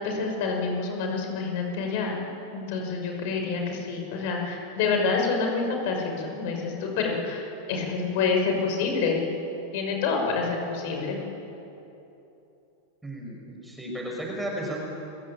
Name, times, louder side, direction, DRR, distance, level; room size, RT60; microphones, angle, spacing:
voice 1, 0.0-2.2 2.5-9.3 9.7-11.2, left 4 dB, 60° left, 2 dB, 5.9 m, -27 dB
voice 2, 13.0-14.8, right 1 dB, 5° right, -1 dB, 5.8 m, -34 dB
29.5 x 16.5 x 8.8 m, 3.0 s
supercardioid pair, 130°, 0 cm